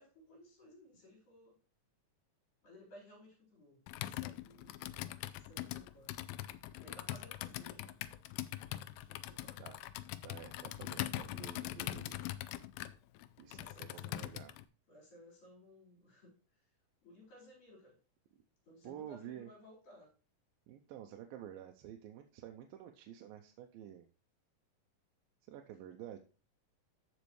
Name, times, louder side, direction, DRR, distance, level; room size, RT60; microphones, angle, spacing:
voice 1, 0.0-1.6 2.6-4.7 5.3-6.2 6.8-8.0 9.0-9.7 13.5-14.3 14.9-16.7 17.0-18.0 18.6-20.1, left 1 dB, 70° left, -4 dB, 6.0 m, -59 dB
Computer keyboard, 3.9-14.6, left 14 dB, 85° left, 2.3 m, -42 dB
voice 2, 10.2-12.2 13.4-14.5 18.8-19.5 20.7-24.1 25.5-26.2, right 10 dB, 85° right, 4 dB, 2.4 m, -50 dB
13.5 x 5.3 x 3.1 m, 0.37 s
omnidirectional pair, 4.1 m